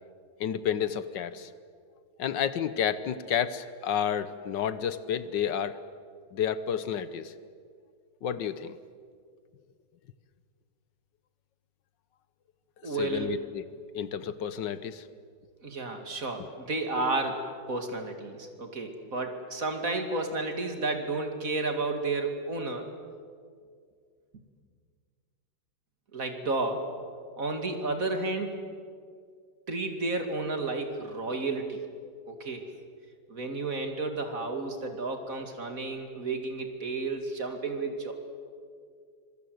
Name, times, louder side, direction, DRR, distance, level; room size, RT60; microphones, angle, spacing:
voice 1, 0.4-1.5 2.2-5.8 6.3-7.3 8.2-8.8 12.8-13.6 13.9-15.0, left 8 dB, 75° left, 13 dB, 1.6 m, -30 dB
voice 2, 12.8-13.4 15.6-22.9 26.1-26.9 27.4-28.5 29.7-31.8 32.3-32.7 33.3-38.1, right 3 dB, 45° right, 5 dB, 2.7 m, -32 dB
25.5 x 23.5 x 7.9 m, 2.1 s
omnidirectional pair, 2.0 m